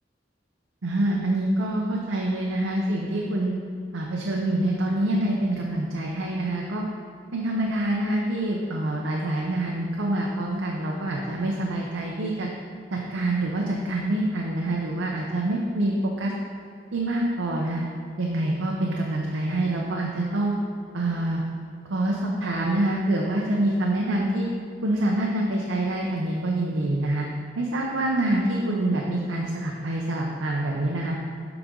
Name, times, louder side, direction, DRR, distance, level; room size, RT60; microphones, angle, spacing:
voice 1, 0.8-3.5 3.9-6.8 7.3-12.5 12.9-16.3 16.9-17.8 18.2-20.5 20.9-21.4 21.9-24.5 24.8-27.3 27.6-31.2, right 1 dB, 90° right, -1 dB, 0.7 m, -26 dB
7.8 x 5.0 x 3.7 m, 2.3 s
head